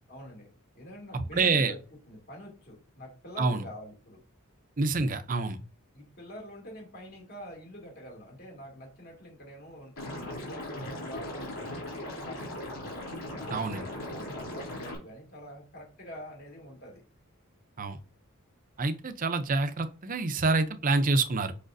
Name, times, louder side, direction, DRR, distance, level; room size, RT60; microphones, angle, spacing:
voice 1, 0.1-0.5 0.7-1.8 2.1-4.2 5.9-12.8 13.3-17.0, equal, 45° left, 2.5 m, -46 dB
voice 2, 1.1-1.7 3.4-3.6 4.8-5.6 13.5-13.8 17.8-18.0 18.8-21.5, right 3 dB, 40° right, 0.6 m, -27 dB
Liquid, 10.0-15.0, left 1 dB, 70° left, 3.1 m, -38 dB
6.4 x 5.7 x 2.6 m
head